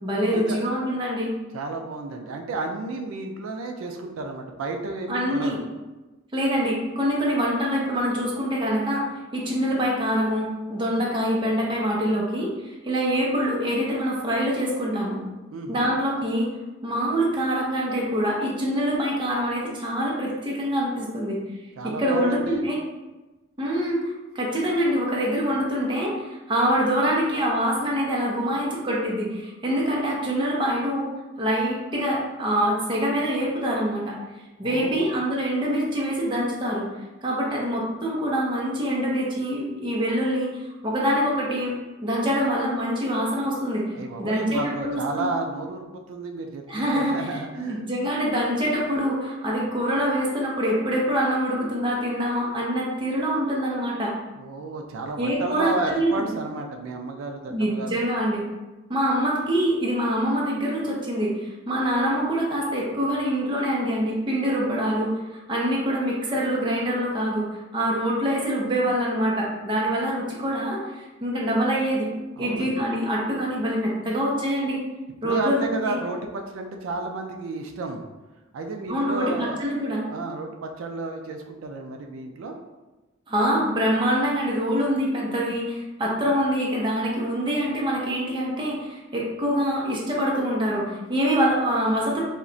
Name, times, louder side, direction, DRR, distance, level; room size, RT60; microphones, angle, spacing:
voice 1, 0.0-1.3 5.1-5.6 6.3-9.0 9.3-15.2 15.7-16.5 16.8-21.4 21.8-22.8 23.6-31.1 31.4-34.2 34.6-36.9 37.2-41.7 42.0-43.9 44.2-45.3 46.7-54.1 55.2-56.3 57.5-58.4 58.9-65.1 65.5-67.5 67.7-72.1 72.4-74.8 75.2-76.0 78.9-80.0 83.3-92.2, equal, 25° right, -4 dB, 0.6 m, -25 dB
voice 2, 1.5-5.6 15.5-15.9 21.8-22.7 34.6-35.1 43.9-47.8 54.4-58.0 72.4-72.7 75.2-78.0 78.5-79.6 80.0-82.6, right 3 dB, 90° right, 4 dB, 0.3 m, -32 dB
2.4 x 2.1 x 3.7 m, 1.1 s
head